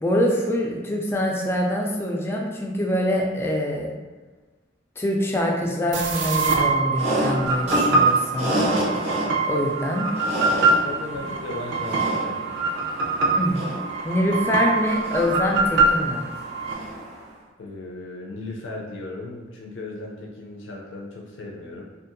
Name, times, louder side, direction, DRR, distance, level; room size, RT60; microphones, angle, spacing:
voice 1, 0.0-3.9 5.0-8.7 9.4-10.1 13.4-13.7 14.0-16.3, left 1 dB, 15° left, -1 dB, 0.3 m, -24 dB
sound 1, 5.9-16.7, right 3 dB, 80° right, 0.4 m, -24 dB
sound 2, 6.9-17.2, right 1 dB, 35° right, 0.6 m, -30 dB
voice 2, 10.5-12.5 17.6-21.8, left 2 dB, 85° left, -2 dB, 0.4 m, -36 dB
2.6 x 2.5 x 2.5 m, 1.3 s
head